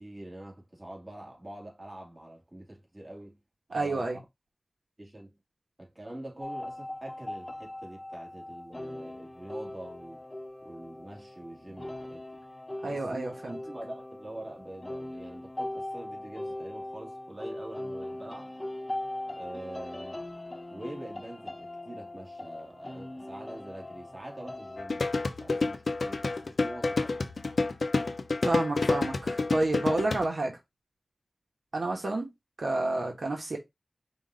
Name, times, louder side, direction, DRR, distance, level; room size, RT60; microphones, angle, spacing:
voice 1, 0.0-3.4 3.7-4.2 5.0-5.4 5.8-10.2 10.6-12.4 12.8-18.5 19.4-20.2 20.7-25.0 25.4-27.3, right 1 dB, 40° right, 2.2 m, -45 dB
voice 2, 3.7-4.2 12.8-13.6 28.4-30.6 31.7-32.3 32.6-33.6, right 2 dB, 85° right, 1.1 m, -30 dB
sound 1, 6.4-24.9, left 1 dB, 30° left, 0.7 m, -40 dB
sound 2, 24.8-30.3, left 3 dB, 90° left, 0.5 m, -29 dB
5.2 x 2.5 x 3.7 m
wide cardioid pair, 45°, 0 cm